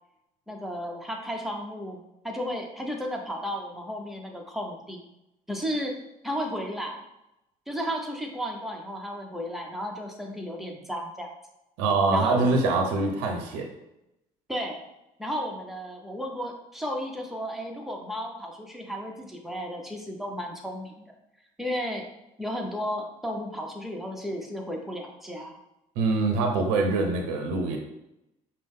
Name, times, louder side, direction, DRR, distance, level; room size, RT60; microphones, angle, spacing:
voice 1, 0.5-5.0 5.5-6.0 6.2-7.0 7.7-11.3 12.1-12.6 14.5-14.8 15.2-21.1 21.6-22.1 22.4-25.6, equal, ahead, 1 dB, 1.0 m, -33 dB
voice 2, 11.8-13.7 26.0-27.8, right 3 dB, 75° right, 3 dB, 0.6 m, -24 dB
5.1 x 2.2 x 3.5 m, 0.89 s
hypercardioid pair, 50°, 19 cm